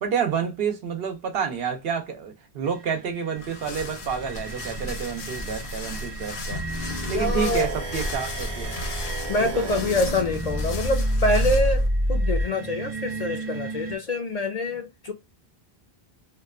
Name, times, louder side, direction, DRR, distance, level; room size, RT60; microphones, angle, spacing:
voice 1, 0.0-6.6 7.1-8.8 9.4-9.8, right 6 dB, 75° right, 0.9 m, -29 dB
sound 1, 2.6-14.0, right 5 dB, 50° right, 0.4 m, -38 dB
sound 2, 3.3-11.9, equal, 75° left, 0.9 m, -34 dB
sound 3, 6.5-12.5, equal, 30° right, 0.7 m, -28 dB
voice 2, 7.1-7.8 9.3-11.8 12.1-15.1, left 2 dB, 50° left, 0.5 m, -26 dB
2.8 x 2.1 x 2.3 m
omnidirectional pair, 1.0 m